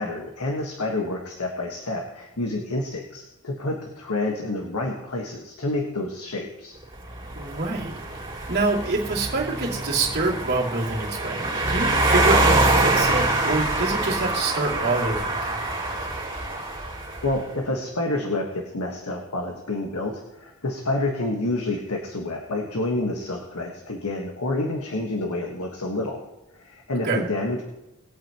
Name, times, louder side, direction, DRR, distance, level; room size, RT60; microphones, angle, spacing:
voice 1, 0.0-6.8 17.2-26.2 26.5-27.6, left 2 dB, 80° left, 1 dB, 1.5 m, -28 dB
sound 1, 7.0-17.3, right 2 dB, 25° right, 3.2 m, -25 dB
voice 2, 7.4-8.2 8.5-15.6 27.0-27.3, right 3 dB, 50° right, -6 dB, 2.7 m, -26 dB
21.5 x 8.7 x 3.0 m, 0.97 s
head